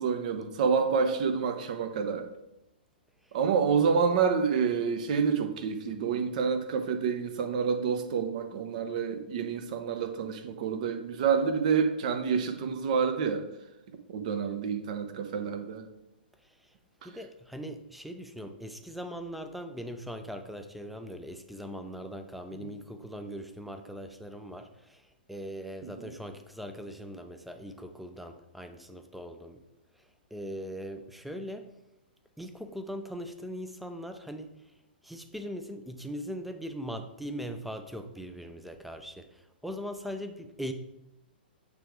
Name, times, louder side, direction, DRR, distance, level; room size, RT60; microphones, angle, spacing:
voice 1, 0.0-2.3 3.3-13.4 14.1-15.8 22.6-22.7 26.0-26.1, right 6 dB, 45° right, 7 dB, 0.9 m, -28 dB
voice 2, 17.0-29.6 30.3-31.7 32.4-34.5 35.0-40.7, equal, ahead, 8 dB, 0.5 m, -40 dB
8.6 x 3.4 x 4.8 m, 0.91 s
figure-of-eight pair, 110°, 5 cm